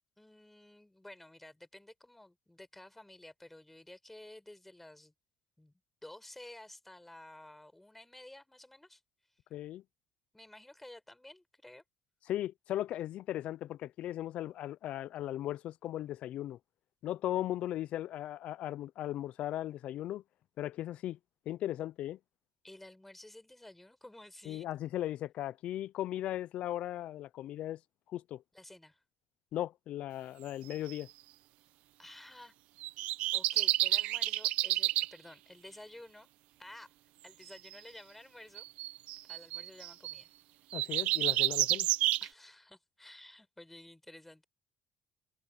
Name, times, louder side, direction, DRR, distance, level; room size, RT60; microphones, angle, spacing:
voice 1, 0.2-5.1 5.6-5.7 6.0-9.0 10.3-11.8 22.6-24.7 28.5-29.0 32.0-32.5 33.3-36.3 36.6-36.9 37.2-38.7 39.2-40.3 42.2-44.4, left 1 dB, 5° left, 5.3 m, -52 dB
voice 2, 9.5-9.8 12.3-16.6 17.0-20.2 20.6-21.2 21.5-22.2 24.5-27.8 28.1-28.4 29.5-31.1 40.7-41.9, left 13 dB, 60° left, 0.5 m, -37 dB
sound 1, 30.7-31.0 32.8-35.1 37.5-37.7 38.6-40.2 40.7-42.3, right 16 dB, 80° right, 0.9 m, -30 dB
cardioid pair, 115°, 2 cm